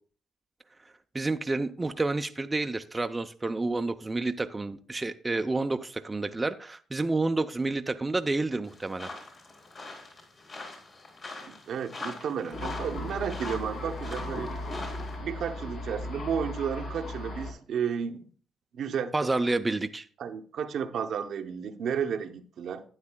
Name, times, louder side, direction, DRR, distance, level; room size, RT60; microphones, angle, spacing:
voice 1, 1.1-9.1 19.1-20.1, right 3 dB, 20° right, 0.4 m, -29 dB
sound 1, 8.6-15.2, left 2 dB, 40° left, 3.4 m, -44 dB
voice 2, 11.4-14.6 15.2-18.2 18.7-19.3 20.2-22.8, right 7 dB, 65° right, 0.7 m, -32 dB
Thunder, 12.5-17.5, left 1 dB, 75° left, 2.6 m, -36 dB
12.0 x 8.8 x 2.2 m
cardioid pair, 90°, 0 cm